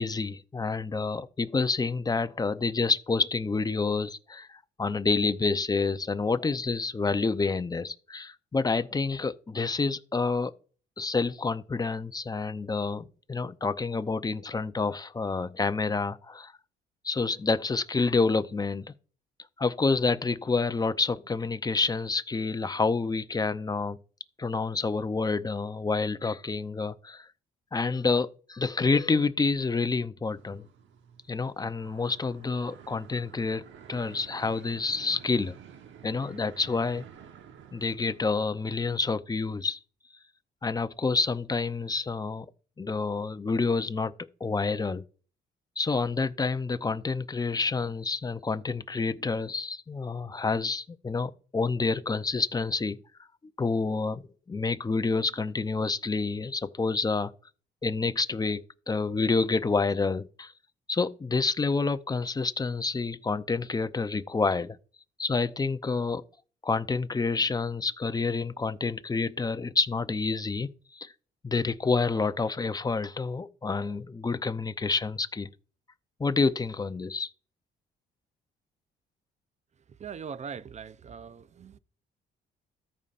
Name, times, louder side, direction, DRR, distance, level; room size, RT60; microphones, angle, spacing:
voice 1, 0.0-10.5 11.0-16.5 17.0-18.8 19.6-24.0 24.4-27.3 27.7-30.7 31.3-35.6 36.0-37.0 37.7-39.8 40.6-42.5 42.8-44.1 44.4-45.0 45.8-53.0 53.6-54.2 54.5-57.3 57.8-60.5 60.9-64.8 65.2-66.2 66.6-71.1 71.4-75.5 76.2-77.3, left 4 dB, 20° left, 0.6 m, -28 dB
sound 1, 30.3-38.5, right 8 dB, 75° right, 1.2 m, -50 dB
voice 2, 79.9-81.8, right 6 dB, 35° right, 0.5 m, -41 dB
14.0 x 5.5 x 2.5 m
cardioid pair, 90°, 20 cm